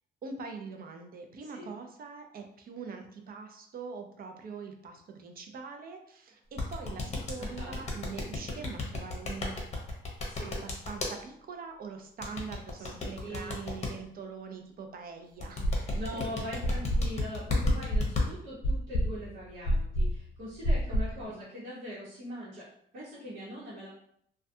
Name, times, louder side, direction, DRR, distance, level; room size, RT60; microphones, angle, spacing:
voice 1, 0.2-9.6 10.4-16.2 20.9-21.4, right 5 dB, 50° right, 4 dB, 0.5 m, -43 dB
sound 1, 6.6-11.1 12.2-13.9 15.4-18.2, left 3 dB, 35° left, 0.7 m, -32 dB
voice 2, 7.4-7.8 10.3-10.6 12.8-13.7 15.7-22.7 22.9-23.9, equal, 75° right, -10 dB, 1.0 m, -42 dB
sound 2, 15.6-16.2 16.6-21.2, equal, 70° left, 0.4 m, -29 dB
2.3 x 2.2 x 2.6 m, 0.68 s
cardioid pair, 90°, 20 cm